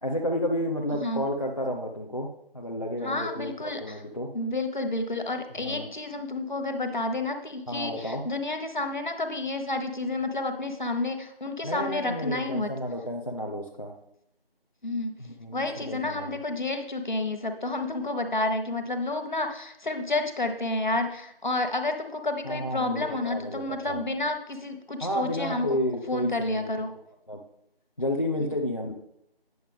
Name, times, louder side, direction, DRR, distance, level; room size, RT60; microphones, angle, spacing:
voice 1, 0.0-2.3 2.5-4.3 5.6-5.9 7.7-8.2 11.6-13.9 15.2-16.3 22.4-24.0 25.0-26.9 27.3-27.4 28.0-28.9, left 1 dB, 35° left, -2 dB, 0.7 m, -31 dB
voice 2, 3.0-4.0 4.3-12.7 14.8-15.1 15.5-25.8 26.1-26.9, left 2 dB, 50° left, 6 dB, 1.2 m, -30 dB
9.3 x 6.8 x 3.5 m, 0.77 s
figure-of-eight pair, 170°, 30 cm